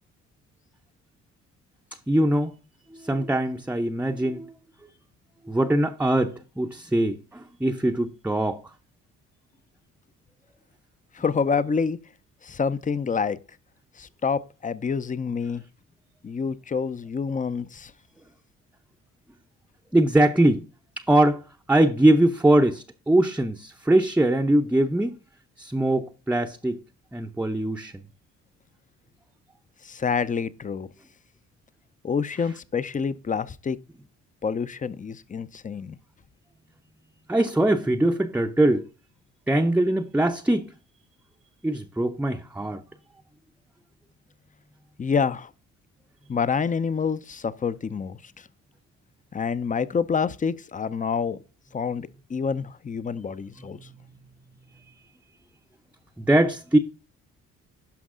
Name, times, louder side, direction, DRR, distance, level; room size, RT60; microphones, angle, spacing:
voice 1, 2.1-2.6 2.9-4.5 5.5-8.7 19.9-20.6 21.0-25.1 25.6-26.8 27.1-28.0 37.3-38.9 39.5-40.7 41.6-42.8 53.6-54.3 54.7-54.8 56.2-56.8, right 1 dB, 5° right, 0.7 m, -22 dB
voice 2, 11.1-12.0 12.4-13.4 14.0-15.6 16.2-17.9 29.8-30.9 32.0-33.8 34.4-36.0 45.0-45.5 46.3-48.2 49.3-51.4 51.7-53.8, left 5 dB, 25° left, 0.6 m, -27 dB
11.5 x 5.4 x 3.7 m
cardioid pair, 90°, 30 cm